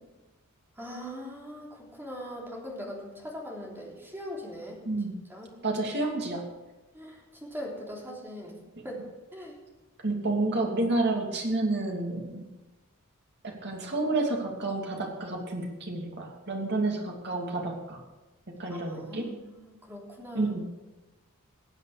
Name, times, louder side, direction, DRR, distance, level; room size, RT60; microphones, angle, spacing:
voice 1, 0.8-4.8 5.3-5.5 6.9-8.6 8.8-9.0 9.3-9.6 18.7-20.5, equal, 10° right, -3 dB, 3.5 m, -41 dB
voice 2, 5.6-6.5 10.0-12.5 13.4-18.0 18.6-19.3 20.3-20.7, right 2 dB, 50° right, 0 dB, 2.8 m, -30 dB
20.5 x 8.1 x 5.1 m, 1.1 s
head